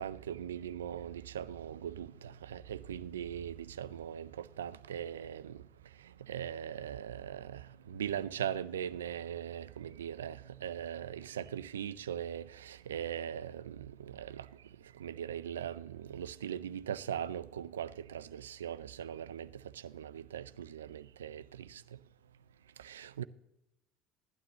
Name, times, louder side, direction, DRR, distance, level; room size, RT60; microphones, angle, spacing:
voice 1, 0.0-5.6 6.3-14.5 15.0-19.5 19.7-21.8 22.8-23.2, right 9 dB, 80° right, 0.4 m, -40 dB
17.0 x 11.5 x 2.9 m
figure-of-eight pair, 65°, 0 cm